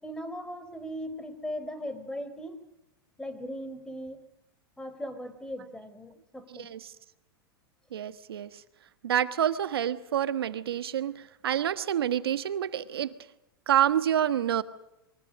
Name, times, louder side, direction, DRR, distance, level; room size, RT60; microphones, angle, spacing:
voice 1, 0.0-2.6 3.2-4.2 4.8-6.7, equal, 5° left, 3.8 m, -38 dB
voice 2, 6.5-6.9 7.9-8.6 9.0-13.1 13.7-14.6, right 10 dB, 80° right, 1.4 m, -28 dB
28.0 x 23.0 x 6.4 m
hypercardioid pair, 110°, 13 cm